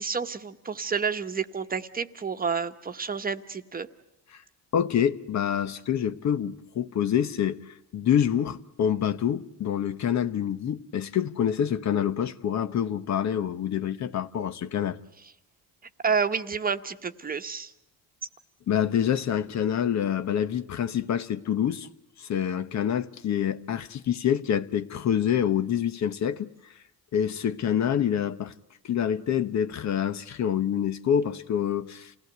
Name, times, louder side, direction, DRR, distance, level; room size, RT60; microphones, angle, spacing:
voice 1, 0.0-3.9 16.0-17.7, right 5 dB, 25° right, 1.2 m, -29 dB
voice 2, 4.7-7.6 7.9-15.0 18.7-21.9 22.2-26.5 27.1-28.5 28.8-32.1, left 9 dB, 50° left, 1.1 m, -26 dB
28.5 x 17.5 x 8.0 m
cardioid pair, 125°, 35 cm